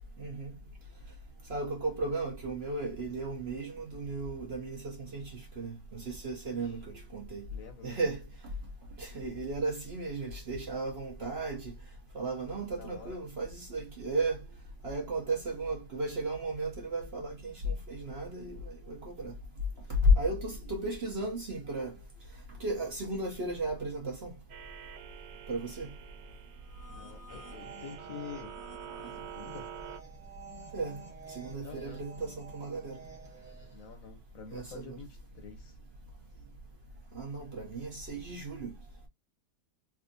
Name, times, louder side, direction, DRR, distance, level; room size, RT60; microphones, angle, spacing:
voice 1, 0.2-0.5 1.5-7.5 7.8-8.2 9.0-11.7 12.1-14.4 14.8-19.3 19.9-21.9 22.6-24.3 25.5-25.9 28.9-29.1 30.7-31.0 31.3-33.0 34.5-35.0 37.1-38.7, right 1 dB, 50° right, 0.9 m, -34 dB
voice 2, 7.5-8.0 12.7-13.2 20.6-20.7 26.8-28.6 29.1-29.7 31.6-32.0 33.7-35.8, left 6 dB, 65° left, 1.0 m, -47 dB
sound 1, 24.5-30.0, right 8 dB, 90° right, 1.3 m, -47 dB
sound 2, 26.6-33.9, right 4 dB, ahead, 0.9 m, -50 dB
3.4 x 2.7 x 2.5 m
omnidirectional pair, 1.8 m